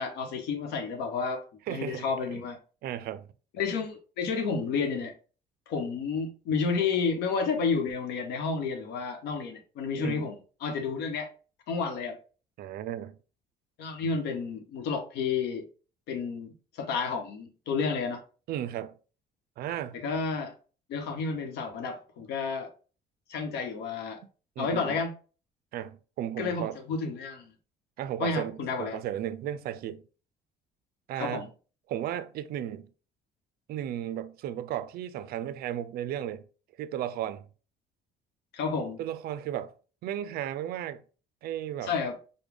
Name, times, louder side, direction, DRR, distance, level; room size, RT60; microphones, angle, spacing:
voice 1, 0.0-2.6 3.6-5.1 5.7-11.3 11.7-12.2 13.8-15.7 16.1-18.2 19.9-20.5 20.9-22.7 23.3-24.2 24.6-25.1 26.4-27.5 28.2-29.0 31.2-31.5 38.5-39.0 41.8-42.2, left 5 dB, 80° left, 0.9 m, -31 dB
voice 2, 1.7-2.5 2.8-3.3 10.0-10.3 12.6-13.2 18.5-18.9 19.6-20.0 24.6-25.0 25.7-26.8 28.0-30.0 31.1-31.5 31.9-32.9 33.7-36.5 36.8-37.5 39.0-39.7 40.0-41.0 41.4-41.9, right 11 dB, 65° right, 0.4 m, -35 dB
5.0 x 2.2 x 3.4 m
cardioid pair, 110°, 17 cm